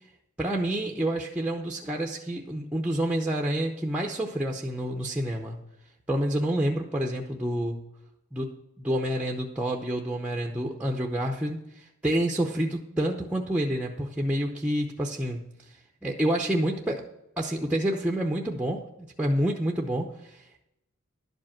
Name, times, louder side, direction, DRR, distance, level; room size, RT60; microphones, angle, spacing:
voice 1, 0.4-5.6 6.1-7.8 8.3-8.5 8.8-15.4 16.0-17.0 17.4-18.8 19.2-20.6, right 1 dB, 5° right, 1 dB, 0.7 m, -28 dB
11.5 x 5.2 x 7.2 m, 0.84 s
head